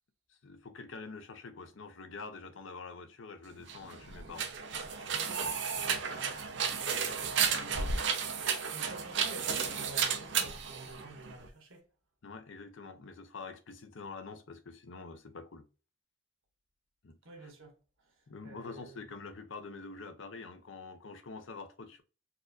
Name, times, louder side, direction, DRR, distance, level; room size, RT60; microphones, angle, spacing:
voice 1, 0.3-4.5 12.2-15.7 17.0-17.5 18.3-22.0, left 4 dB, 75° left, 0.6 m, -46 dB
sound 1, 3.6-11.5, right 6 dB, 65° right, 0.7 m, -33 dB
voice 2, 5.1-11.8 17.2-17.8 18.4-19.0, right 2 dB, 90° right, 1.3 m, -49 dB
4.1 x 2.6 x 2.4 m
head